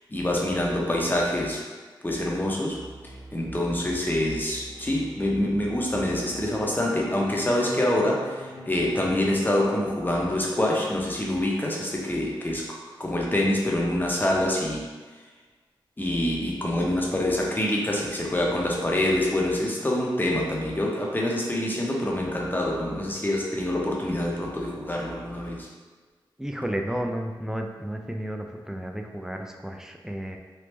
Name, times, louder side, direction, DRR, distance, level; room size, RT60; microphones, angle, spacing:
voice 1, 0.1-1.6 2.0-2.8 3.3-12.7 13.0-14.9 16.0-25.7, left 1 dB, 20° left, -3 dB, 0.7 m, -26 dB
sound 1, 2.7-6.7 7.4-8.9, right 1 dB, 50° left, 1.3 m, -45 dB
sound 2, 5.9-11.9, left 2 dB, 90° left, 0.4 m, -46 dB
voice 2, 26.4-30.4, equal, 5° right, 3 dB, 0.3 m, -32 dB
3.3 x 2.0 x 3.1 m, 1.4 s
cardioid pair, 50°, 9 cm